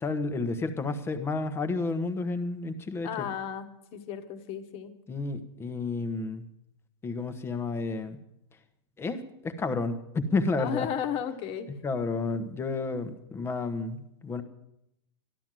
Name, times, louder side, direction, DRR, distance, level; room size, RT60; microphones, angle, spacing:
voice 1, 0.0-3.3 5.1-6.4 7.0-8.2 9.0-10.9 11.8-14.4, left 3 dB, 15° left, 9 dB, 1.1 m, -31 dB
voice 2, 3.0-4.9 10.6-11.7, left 9 dB, 40° left, 8 dB, 1.5 m, -34 dB
13.0 x 12.0 x 7.6 m, 0.80 s
supercardioid pair, 135°, 15 cm